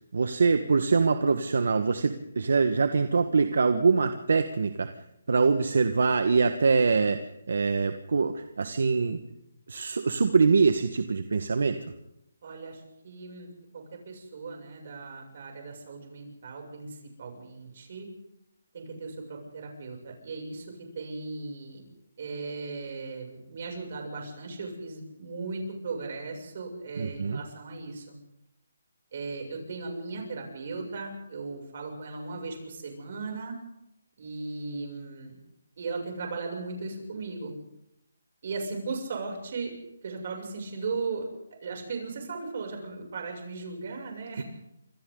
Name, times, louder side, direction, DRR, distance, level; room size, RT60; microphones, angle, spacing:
voice 1, 0.1-4.9 5.3-9.2 9.7-11.8 27.0-27.4 44.4-44.5, right 4 dB, 70° right, 8 dB, 1.5 m, -24 dB
voice 2, 12.4-18.1 18.7-21.8 22.2-28.2 29.1-33.5 34.2-35.4 35.8-37.5 38.4-39.7 40.0-41.3 41.6-44.4, right 3 dB, 45° right, 1 dB, 7.2 m, -37 dB
28.5 x 26.5 x 4.0 m, 0.83 s
hypercardioid pair, 170°, 0 cm